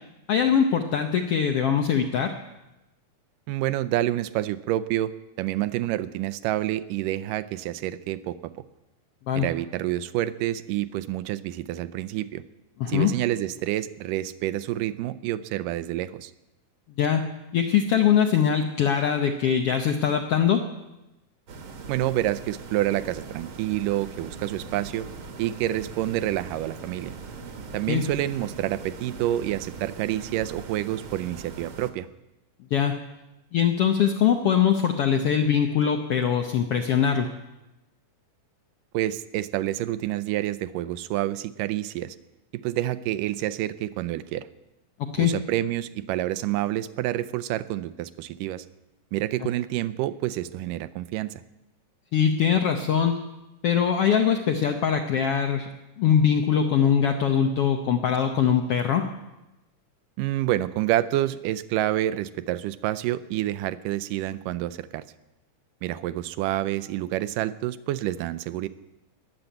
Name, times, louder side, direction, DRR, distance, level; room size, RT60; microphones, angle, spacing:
voice 1, 0.3-2.3 9.3-9.5 12.8-13.1 17.0-17.2 17.5-20.6 27.9-28.1 32.7-32.9 33.5-37.3 45.1-45.3 52.1-53.2 53.6-55.7 56.0-59.0, left 8 dB, 70° left, 5 dB, 1.4 m, -22 dB
voice 2, 3.5-5.1 5.4-8.5 9.4-12.4 12.9-16.3 21.9-25.1 25.4-27.2 27.7-32.1 38.9-42.2 42.5-44.5 45.2-48.6 49.1-51.4 60.2-65.0 65.8-68.7, right 14 dB, 85° right, 14 dB, 2.3 m, -28 dB
sound 1, 21.5-31.9, right 4 dB, 50° right, 1.7 m, -41 dB
20.0 x 7.2 x 9.1 m, 0.99 s
omnidirectional pair, 3.7 m